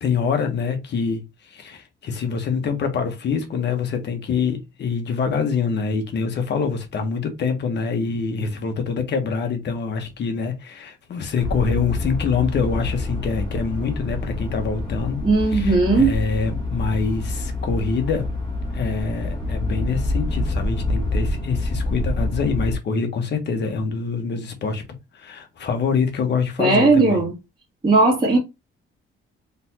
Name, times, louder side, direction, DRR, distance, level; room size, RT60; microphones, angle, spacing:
voice 1, 0.0-18.3 18.7-24.8 25.1-27.2, left 5 dB, 55° left, 1.2 m, -25 dB
sound 1, 11.4-22.8, left 2 dB, 25° left, 1.6 m, -27 dB
voice 2, 15.2-16.2 26.6-27.3 27.8-28.4, right 3 dB, 20° right, 1.9 m, -17 dB
4.1 x 3.4 x 2.8 m
cardioid pair, 135°, 21 cm